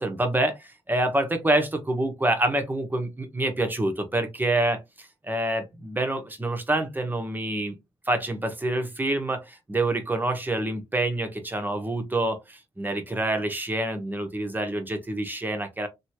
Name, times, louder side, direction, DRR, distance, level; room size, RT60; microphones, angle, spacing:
voice 1, 0.0-7.8 8.1-15.9, right 1 dB, 15° right, 1.1 m, -27 dB
3.1 x 2.8 x 2.8 m
cardioid pair, 70°, 11 cm